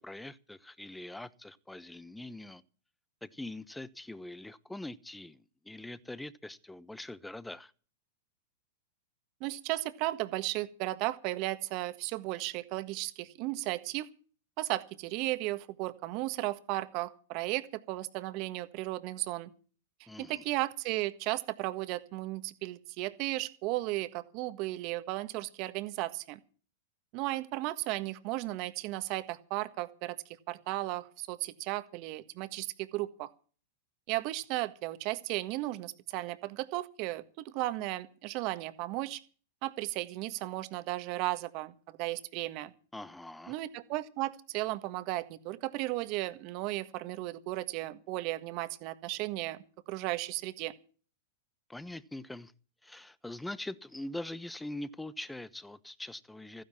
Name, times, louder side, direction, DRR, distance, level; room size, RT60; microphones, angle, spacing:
voice 1, 0.0-2.6 3.2-7.7 20.1-20.4 42.9-43.6 51.7-52.5 52.8-56.6, left 1 dB, 5° left, 1.0 m, -43 dB
voice 2, 9.4-14.1 14.6-19.5 20.2-26.4 27.1-30.2 30.5-33.3 34.1-39.2 39.6-42.7 43.5-50.7, right 18 dB, 50° right, 1.6 m, -35 dB
15.0 x 10.5 x 7.3 m
hypercardioid pair, 105°, 0 cm